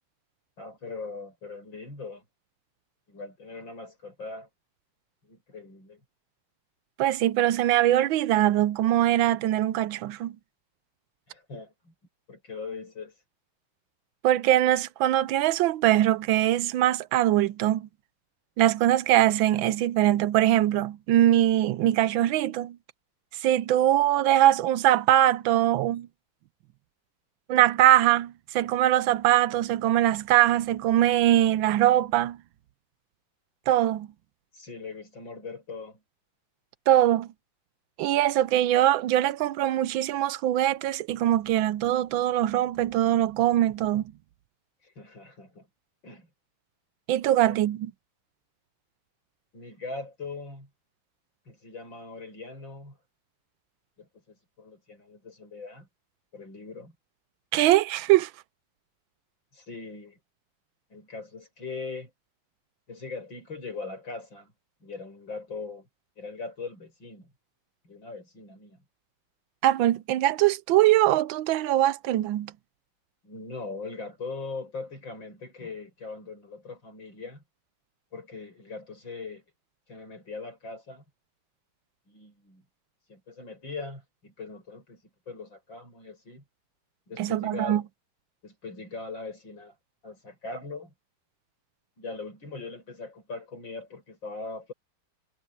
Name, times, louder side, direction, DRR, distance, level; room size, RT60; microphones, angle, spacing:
voice 1, 0.6-2.2 3.1-4.5 5.2-6.0 11.3-11.9 12.3-13.1 34.5-36.0 44.8-45.7 46.0-46.3 47.4-47.6 49.5-50.7 51.5-53.0 54.0-55.9 56.3-56.9 59.5-60.2 60.9-62.1 62.9-64.5 64.8-65.9 66.2-67.3 67.8-68.8 73.2-77.4 78.1-79.4 79.9-81.0 82.1-82.6 83.1-86.4 87.1-87.8 88.4-89.7 90.0-90.9 92.0-94.7, left 3 dB, 75° left, 8.3 m, -40 dB
voice 2, 7.0-10.3 14.2-17.9 18.6-22.8 23.4-26.1 27.5-32.4 33.7-34.1 36.9-37.3 38.0-44.0 47.1-47.9 57.5-58.3 69.6-72.5 87.2-87.8, right 13 dB, 85° right, 1.4 m, -22 dB
omnidirectional pair, 2.1 m